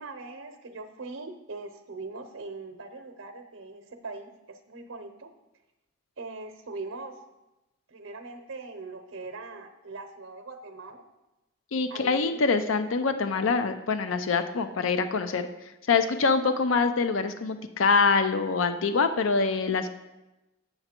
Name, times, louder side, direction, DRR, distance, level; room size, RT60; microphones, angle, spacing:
voice 1, 0.0-5.3 6.2-7.2 7.9-11.0 11.9-12.5, right 3 dB, 85° right, 7 dB, 0.7 m, -41 dB
voice 2, 11.7-15.5 15.9-19.9, left 4 dB, 80° left, 10 dB, 0.5 m, -25 dB
8.0 x 6.9 x 4.3 m, 0.99 s
head